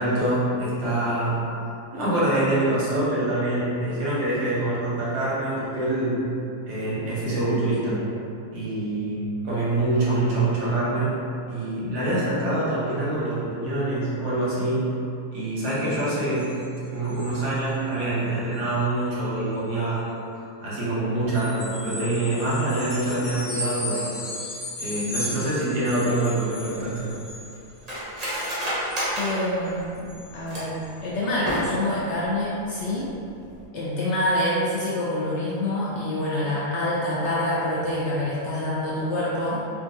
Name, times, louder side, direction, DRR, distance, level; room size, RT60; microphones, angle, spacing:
voice 1, 0.0-1.4 1.9-6.2 6.6-8.0 8.5-11.1 11.5-14.9 15.3-16.6 16.9-20.1 20.6-24.2 24.8-27.1, right 1 dB, 85° right, -8 dB, 1.5 m, -25 dB
sound 1, 15.6-16.7 17.0-17.6 17.9-18.1 18.5-18.7 21.3-27.8 28.2-29.3 29.6-29.7 29.9-30.3 30.8-30.9, left 1 dB, 15° left, 0.5 m, -36 dB
Cutlery silverware, 26.4-30.9 31.3-32.0 32.3-32.4 32.8-33.1 33.5-33.6, equal, 40° right, 0.5 m, -31 dB
voice 2, 29.1-30.8 31.0-33.1 33.7-39.7, left 1 dB, 75° left, -7 dB, 0.6 m, -26 dB
3.8 x 2.3 x 2.5 m, 2.5 s
omnidirectional pair, 1.7 m